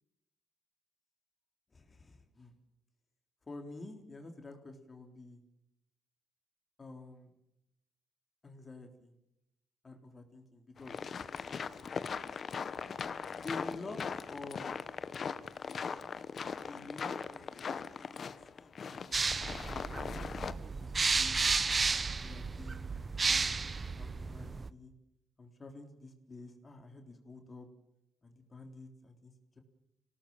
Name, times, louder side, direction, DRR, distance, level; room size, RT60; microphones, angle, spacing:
voice 1, 1.7-2.5 3.5-5.4 6.8-7.3 8.4-9.1 9.8-11.0 13.4-14.0 14.3-14.7 16.7-17.6 18.0-19.6 20.2-21.4 21.8-24.9 25.4-27.7 28.2-29.6, left 3 dB, 30° left, 4 dB, 3.7 m, -49 dB
sound 1, 10.8-20.5, left 6 dB, 45° left, 1.2 m, -40 dB
sound 2, 19.1-24.7, right 4 dB, 30° right, 1.0 m, -32 dB
26.0 x 18.0 x 7.2 m, 0.85 s
cardioid pair, 90°, 0 cm